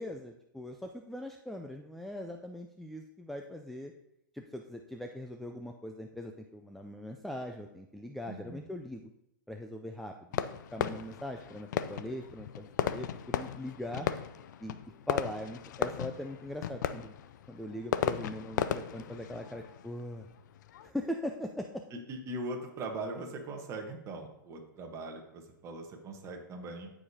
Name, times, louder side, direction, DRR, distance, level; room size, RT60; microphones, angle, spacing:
voice 1, 0.0-3.9 4.3-9.0 9.5-10.5 10.7-14.1 14.6-14.8 15.1-17.1 17.5-20.3 20.8-21.8, left 1 dB, ahead, 3 dB, 0.3 m, -41 dB
voice 2, 8.3-8.6 14.0-14.1 21.9-26.9, right 2 dB, 25° right, 2 dB, 1.2 m, -40 dB
Fireworks, 10.3-20.9, left 9 dB, 60° left, 0.4 m, -36 dB
14.0 x 4.9 x 2.8 m, 0.80 s
hypercardioid pair, 120°, 11 cm